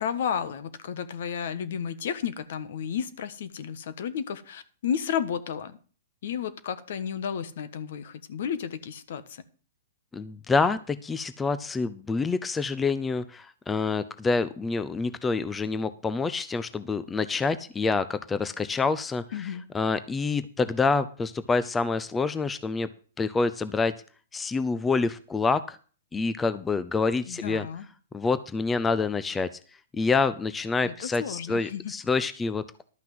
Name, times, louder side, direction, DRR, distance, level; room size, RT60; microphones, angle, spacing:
voice 1, 0.0-5.8 6.2-9.4 19.3-19.6 27.3-27.9 30.8-31.9, left 8 dB, 65° left, 13 dB, 1.3 m, -32 dB
voice 2, 10.1-22.9 23.2-23.9 24.3-25.8 26.1-27.7 28.1-29.5 29.9-32.8, left 4 dB, 15° left, 14 dB, 0.6 m, -27 dB
12.0 x 5.8 x 7.7 m, 0.39 s
hypercardioid pair, 125°, 0 cm